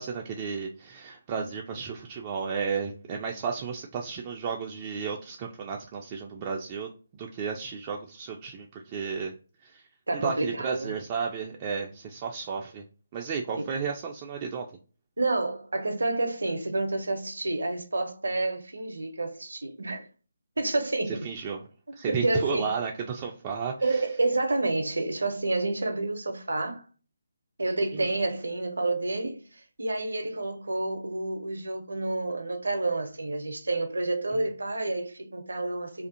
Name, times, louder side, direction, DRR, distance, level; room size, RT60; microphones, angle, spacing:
voice 1, 0.0-9.3 9.6-9.8 10.1-12.8 13.1-14.7 21.2-21.6 21.9-24.1 27.9-28.1 34.4-34.5, right 6 dB, 25° right, 0.3 m, -33 dB
voice 2, 10.1-10.9 13.5-13.7 15.2-20.1 20.6-21.3 22.1-22.7 23.8-26.8 27.6-36.1, right 2 dB, 65° right, 0.6 m, -29 dB
2.5 x 2.3 x 2.5 m
figure-of-eight pair, 150°, 0 cm